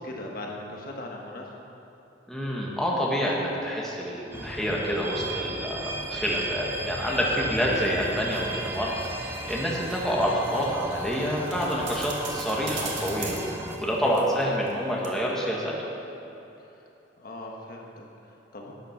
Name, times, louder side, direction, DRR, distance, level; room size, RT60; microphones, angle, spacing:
voice 1, 0.0-1.5 14.3-14.5 17.2-18.7, left 1 dB, 50° left, -1 dB, 1.4 m, -39 dB
voice 2, 2.3-8.9 9.2-13.4 13.8-15.7, equal, ahead, -4 dB, 1.6 m, -27 dB
sound 1, 4.3-13.8, right 1 dB, 15° right, 0.8 m, -35 dB
sound 2, 7.8-14.8 15.0-15.1, right 4 dB, 80° right, 2.0 m, -42 dB
12.0 x 9.1 x 5.9 m, 3.0 s
head